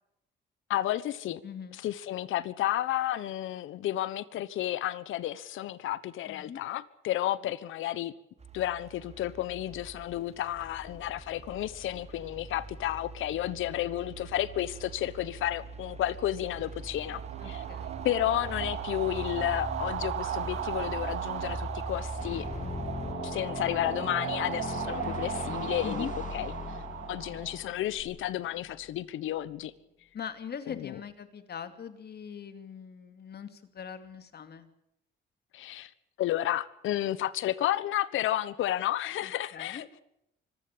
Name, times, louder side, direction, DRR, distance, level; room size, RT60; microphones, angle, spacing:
voice 1, 0.7-1.4 1.8-8.1 8.5-17.6 18.0-22.5 23.2-26.1 26.3-26.8 27.1-29.7 30.7-31.0 35.5-35.9 36.2-39.9, left 13 dB, 80° left, 1.2 m, -32 dB
voice 2, 1.4-1.8 6.2-6.6 17.4-18.0 25.8-26.1 30.1-34.7 39.2-40.0, left 7 dB, 55° left, 2.7 m, -41 dB
sound 1, 8.4-23.1, right 2 dB, 35° right, 4.6 m, -42 dB
sound 2, 16.9-28.0, right 10 dB, 80° right, 2.3 m, -37 dB
sound 3, 22.2-28.9, left 5 dB, 40° left, 2.9 m, -39 dB
25.0 x 15.0 x 8.6 m
cardioid pair, 90°, 20 cm